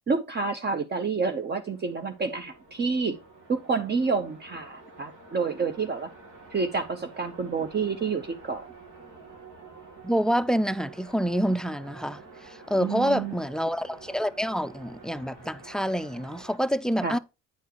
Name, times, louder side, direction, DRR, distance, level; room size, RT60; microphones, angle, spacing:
voice 1, 0.1-3.2 3.5-6.1 6.5-8.7 12.8-13.3 17.0-17.2, right 4 dB, 35° right, 0.8 m, -28 dB
sound 1, 1.0-16.6, right 3 dB, 80° right, 2.3 m, -49 dB
voice 2, 10.0-17.2, equal, ahead, 0.3 m, -27 dB
9.2 x 4.6 x 3.0 m
cardioid pair, 90°, 30 cm